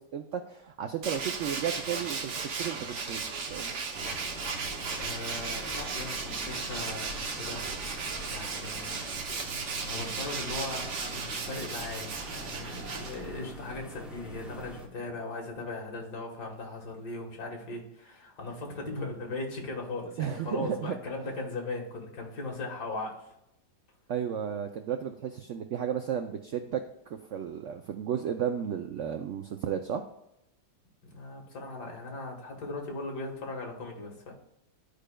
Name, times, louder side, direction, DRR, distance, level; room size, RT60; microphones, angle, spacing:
voice 1, 0.0-3.7 20.2-21.0 24.1-26.8 27.1-30.0, right 8 dB, 90° right, 5 dB, 0.6 m, -33 dB
Tools, 1.0-13.5, right 4 dB, 55° right, 1.0 m, -36 dB
sound 1, 3.9-14.9, equal, ahead, 0.3 m, -45 dB
voice 2, 5.0-7.6 8.3-9.2 9.8-23.3 31.0-34.3, left 2 dB, 70° left, 0 dB, 2.1 m, -38 dB
12.0 x 5.0 x 2.2 m, 0.81 s
omnidirectional pair, 1.9 m